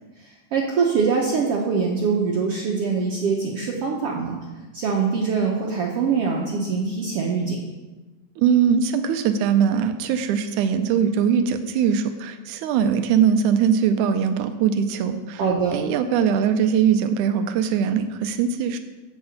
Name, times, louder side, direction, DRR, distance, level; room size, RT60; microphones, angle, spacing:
voice 1, 0.2-4.4 4.7-7.6 15.4-15.8, right 5 dB, 65° right, -1 dB, 1.6 m, -23 dB
voice 2, 8.4-15.4 15.7-18.8, right 7 dB, 90° right, 8 dB, 2.1 m, -21 dB
8.0 x 6.7 x 8.0 m, 1.2 s
omnidirectional pair, 3.5 m